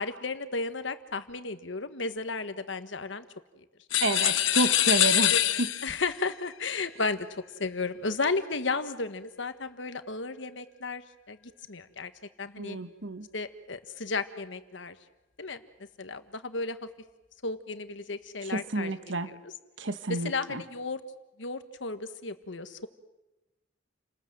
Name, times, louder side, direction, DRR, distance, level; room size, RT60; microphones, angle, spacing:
voice 1, 0.0-3.2 3.6-3.7 5.3-11.4 11.7-12.1 12.4-12.8 13.3-14.9 15.4-15.6 16.0-16.9 17.4-18.9 19.2-19.5 20.1-21.0 21.4-22.9, left 3 dB, 70° left, 10 dB, 1.5 m, -34 dB
sound 1, 3.9-6.1, left 12 dB, 85° left, 1.0 m, -24 dB
voice 2, 4.0-5.3 5.6-5.7 12.6-13.3 18.5-19.3 19.8-20.6, right 2 dB, 70° right, 10 dB, 1.5 m, -30 dB
30.0 x 20.0 x 7.8 m, 1.0 s
head